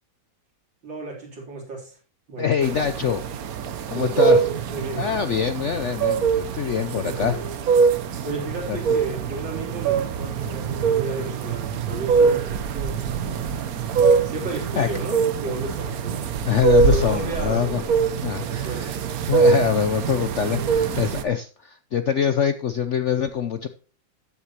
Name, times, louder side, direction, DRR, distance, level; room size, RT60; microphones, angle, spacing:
voice 1, 0.8-2.0 2.3-2.8 3.9-4.4 4.7-5.2 6.9-7.5 8.2-13.6 14.2-16.3 16.9-18.9, right 3 dB, 90° right, -1 dB, 4.2 m, -33 dB
voice 2, 2.4-3.2 3.9-4.4 5.0-7.3 8.7-8.8 14.8-14.9 16.5-17.8 18.2-19.0 19.3-23.7, left 8 dB, 70° left, 10 dB, 0.7 m, -24 dB
sound 1, 2.6-21.2, right 5 dB, 60° right, 1.1 m, -23 dB
13.0 x 8.2 x 2.9 m, 0.39 s
omnidirectional pair, 2.0 m